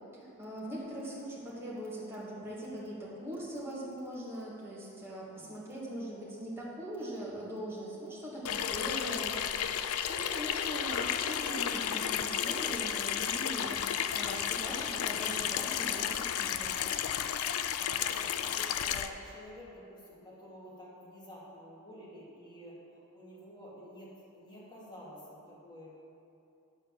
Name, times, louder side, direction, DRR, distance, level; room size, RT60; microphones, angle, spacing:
voice 1, 0.1-9.4 10.1-16.8, right 1 dB, 10° right, -7 dB, 2.0 m, -41 dB
voice 2, 5.3-5.6 17.9-26.0, equal, 20° left, -7 dB, 2.4 m, -50 dB
Water tap faucet / Sink (filling or washing), 8.4-19.1, left 9 dB, 75° left, 0.4 m, -33 dB
10.0 x 4.4 x 7.4 m, 2.6 s
head